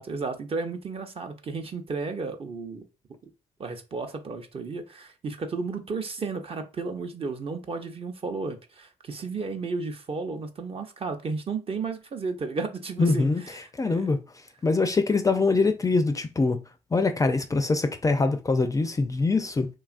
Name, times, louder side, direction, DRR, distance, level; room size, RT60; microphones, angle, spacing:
voice 1, 0.0-2.9 3.6-14.1, right 4 dB, 40° right, 0.6 m, -33 dB
voice 2, 13.0-14.2 14.6-16.6 16.9-19.7, left 3 dB, 20° left, 0.4 m, -24 dB
2.9 x 2.4 x 2.4 m
supercardioid pair, 65°, 15 cm